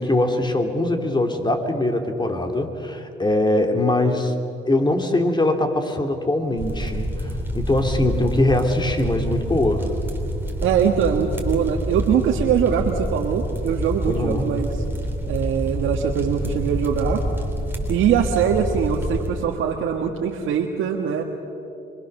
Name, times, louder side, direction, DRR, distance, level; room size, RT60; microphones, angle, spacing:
voice 1, 0.0-4.3 4.7-9.9 14.1-14.6, left 1 dB, 20° left, 5 dB, 2.7 m, -22 dB
sound 1, 6.6-19.3, equal, 10° right, 3.6 m, -27 dB
voice 2, 10.6-14.7 15.3-17.2 17.9-21.2, right 8 dB, 85° right, 1 dB, 1.6 m, -22 dB
25.5 x 23.5 x 6.7 m, 2.8 s
cardioid pair, 90°, 20 cm